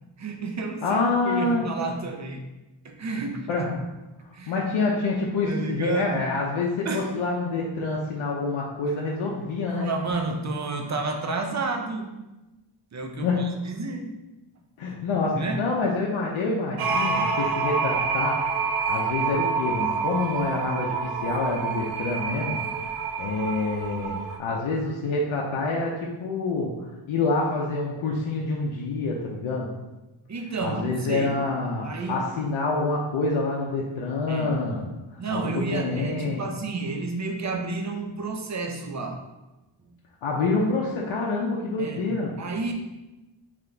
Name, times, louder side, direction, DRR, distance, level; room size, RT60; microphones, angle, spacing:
voice 1, 0.2-1.0 1.3-2.4 2.8-3.7 4.3-4.6 5.5-6.3 6.8-7.1 9.7-12.1 12.9-14.2 15.3-15.6 30.3-31.4 31.8-32.2 34.3-34.5 35.2-39.2 41.8-42.0 42.4-42.7, right 3 dB, 35° right, 3 dB, 0.5 m, -30 dB
voice 2, 0.8-1.7 3.5-3.6 4.5-9.9 13.2-13.4 14.8-29.7 30.6-34.9 35.3-36.4 40.2-42.3, left 3 dB, 80° left, -2 dB, 0.6 m, -27 dB
sound 1, 16.8-24.4, right 5 dB, 90° right, 0.6 m, -27 dB
3.8 x 2.9 x 3.3 m, 1.0 s
wide cardioid pair, 125°, 49 cm